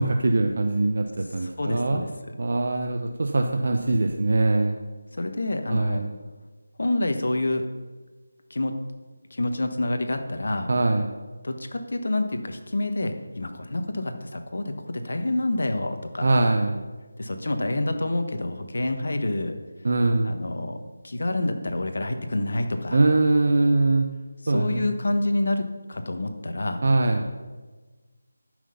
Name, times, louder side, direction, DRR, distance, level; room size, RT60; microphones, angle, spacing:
voice 1, 0.0-2.0 2.4-4.8 5.7-6.1 10.7-11.1 16.2-16.8 19.8-20.3 22.9-24.1 24.5-24.9 26.8-27.2, right 2 dB, 55° right, 4 dB, 0.8 m, -22 dB
voice 2, 1.4-2.1 5.2-6.0 6.8-7.6 8.5-8.8 9.3-10.7 11.4-16.3 17.2-19.5 20.2-20.8 21.0-23.0 24.5-26.8, left 2 dB, 65° left, 6 dB, 1.3 m, -27 dB
12.0 x 6.3 x 5.6 m, 1.3 s
figure-of-eight pair, 165°, 0 cm